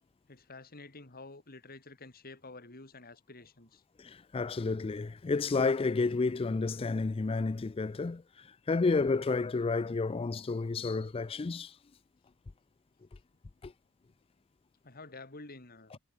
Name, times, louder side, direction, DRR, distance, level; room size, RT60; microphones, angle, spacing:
voice 1, 0.3-3.8 14.8-16.0, left 3 dB, 40° left, 2.7 m, -49 dB
voice 2, 4.0-11.8 13.6-13.7, left 3 dB, 25° left, 0.4 m, -31 dB
head